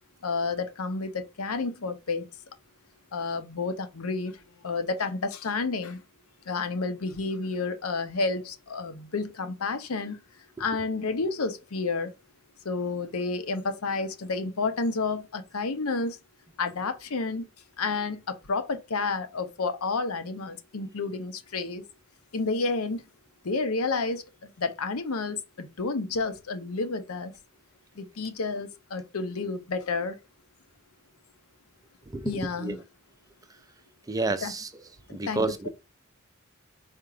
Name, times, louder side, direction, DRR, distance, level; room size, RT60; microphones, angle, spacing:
voice 1, 0.2-2.3 3.1-6.0 6.5-10.2 10.6-12.1 12.6-16.2 16.6-17.5 17.8-21.8 22.3-23.0 23.4-27.3 28.0-30.2 32.2-32.8 34.4-34.5 35.3-35.7, left 3 dB, 85° left, 0.7 m, -30 dB
voice 2, 32.1-32.8 34.1-34.7 35.1-35.7, right 3 dB, 15° right, 0.4 m, -30 dB
4.4 x 2.5 x 4.8 m
head